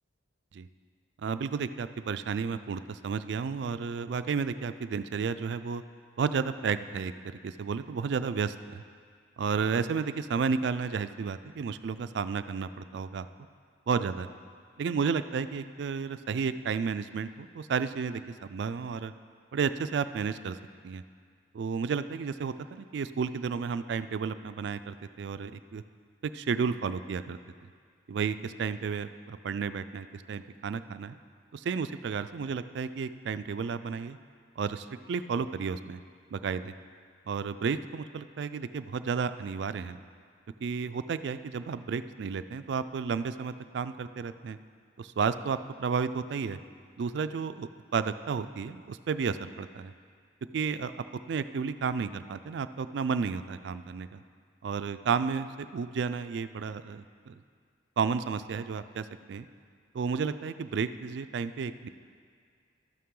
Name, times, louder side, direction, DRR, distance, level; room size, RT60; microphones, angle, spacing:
voice 1, 1.2-5.8 6.2-8.8 9.4-13.3 13.9-14.3 14.8-19.1 19.5-20.6 20.8-21.0 21.5-25.8 26.3-27.4 28.1-31.2 31.5-34.2 34.6-36.0 36.3-36.7 37.3-40.0 40.6-44.6 45.0-46.6 47.0-49.9 50.5-50.9 51.3-54.2 54.6-57.4 58.0-59.5 59.9-61.9, right 5 dB, 65° right, 12 dB, 0.3 m, -32 dB
12.0 x 8.5 x 3.8 m, 2.1 s
head